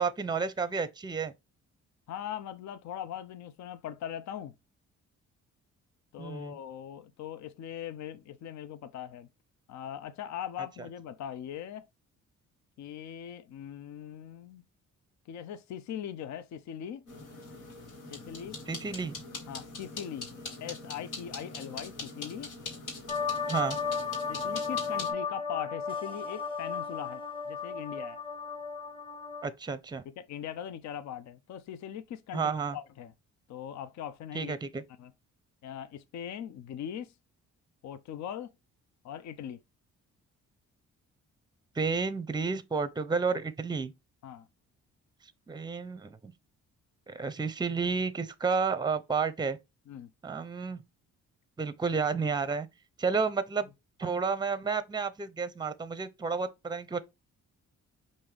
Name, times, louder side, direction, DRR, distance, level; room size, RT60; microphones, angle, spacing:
voice 1, 0.0-1.3 6.2-6.6 18.7-19.1 23.5-23.8 29.4-30.0 32.3-32.8 34.3-34.8 41.7-43.9 45.5-46.3 47.1-49.6 50.2-50.8 51.6-52.7 53.0-53.7 54.0-57.0, right 5 dB, 15° right, 0.6 m, -31 dB
voice 2, 2.1-4.5 6.1-9.3 9.7-11.9 12.8-14.6 15.3-17.0 18.1-18.6 19.5-20.3 20.6-22.6 24.3-28.2 30.0-33.1 33.5-34.5 35.0-35.1 35.6-37.1 37.8-38.5 39.0-39.6 44.2-44.5 49.9-50.1, left 9 dB, 65° left, 0.6 m, -40 dB
sound 1, 17.1-25.1, left 3 dB, 85° left, 1.8 m, -42 dB
sound 2, 23.1-29.5, left 5 dB, 20° left, 1.2 m, -34 dB
5.4 x 2.6 x 3.3 m
cardioid pair, 90°, 30 cm